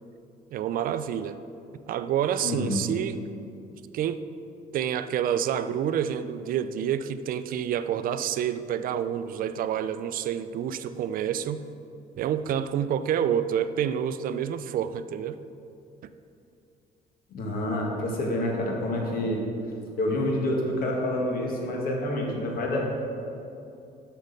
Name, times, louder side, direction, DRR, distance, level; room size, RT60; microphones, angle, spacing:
voice 1, 0.5-1.4 1.9-3.2 3.9-4.2 4.7-11.7 12.2-15.4, right 9 dB, 55° right, 12 dB, 0.4 m, -28 dB
voice 2, 2.4-3.0 17.3-19.5 20.0-22.9, left 1 dB, 60° left, 0 dB, 1.6 m, -28 dB
6.5 x 6.3 x 5.1 m, 2.6 s
cardioid pair, 110°, 17 cm